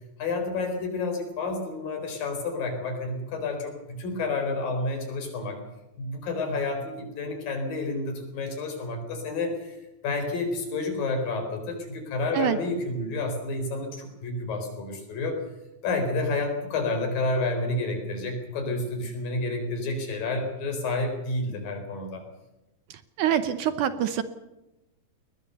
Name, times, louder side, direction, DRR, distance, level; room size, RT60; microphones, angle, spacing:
voice 1, 0.2-5.6 6.0-9.8 10.0-15.4 15.8-22.2, left 3 dB, 70° left, 5 dB, 5.9 m, -30 dB
voice 2, 23.2-24.2, right 10 dB, 70° right, 11 dB, 2.2 m, -25 dB
21.0 x 20.5 x 6.9 m, 0.98 s
omnidirectional pair, 4.1 m